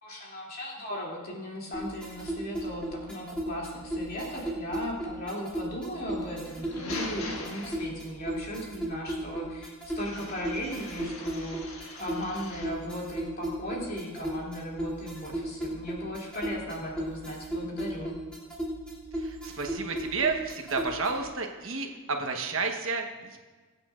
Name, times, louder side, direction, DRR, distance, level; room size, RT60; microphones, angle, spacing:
voice 1, 0.0-18.1, equal, 40° left, -3 dB, 2.7 m, -37 dB
sound 1, 1.7-21.3, right 1 dB, 5° left, 2.9 m, -36 dB
sound 2, 6.4-8.3 9.9-12.9, left 2 dB, 70° left, 1.6 m, -42 dB
voice 2, 19.1-23.4, right 4 dB, 65° right, 3 dB, 1.2 m, -31 dB
22.0 x 8.6 x 2.5 m, 1.4 s
head